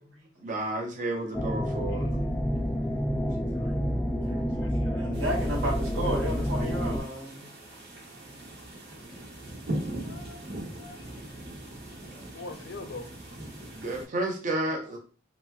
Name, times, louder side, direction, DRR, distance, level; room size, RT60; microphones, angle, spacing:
voice 1, 0.4-2.1 13.7-15.0, right 2 dB, 40° right, 0.5 m, -31 dB
sound 1, 1.3-7.0, equal, 10° left, 0.3 m, -28 dB
voice 2, 4.2-7.5 10.8-10.9, equal, 80° right, 1.2 m, -34 dB
sound 2, 5.1-14.0, right 1 dB, 60° right, 1.0 m, -40 dB
voice 3, 10.0-11.3 12.3-13.1, left 3 dB, 70° left, 0.5 m, -43 dB
3.1 x 2.9 x 2.3 m
head